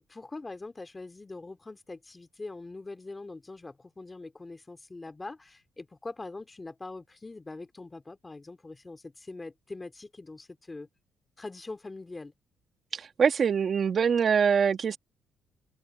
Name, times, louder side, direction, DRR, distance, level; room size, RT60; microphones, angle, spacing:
voice 1, 0.0-10.9 11.4-12.3, left 3 dB, 20° left, 2.6 m, -43 dB
voice 2, 12.9-15.0, right 6 dB, 50° right, 2.2 m, -24 dB
cardioid pair, 95°, 0 cm